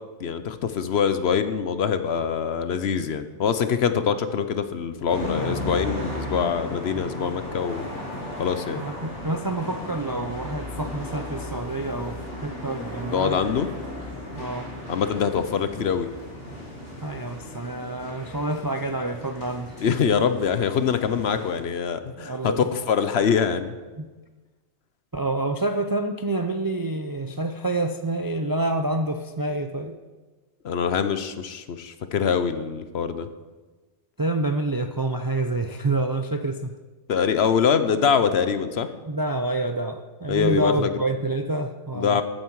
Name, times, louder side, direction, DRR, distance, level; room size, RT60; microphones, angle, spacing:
voice 1, 0.2-7.8 8.4-8.8 13.1-13.7 14.9-16.1 19.8-23.8 30.6-33.3 37.1-38.9 40.3-40.9 41.9-42.2, left 7 dB, 65° left, 10 dB, 1.0 m, -24 dB
sound 1, 5.1-21.6, left 1 dB, 80° left, 2.8 m, -36 dB
voice 2, 8.8-13.4 14.4-14.7 17.0-19.7 22.2-22.7 24.0-24.1 25.1-30.0 34.2-36.7 39.1-42.2, right 2 dB, 35° right, 6 dB, 0.3 m, -27 dB
13.5 x 9.2 x 4.7 m, 1.3 s
omnidirectional pair, 1.2 m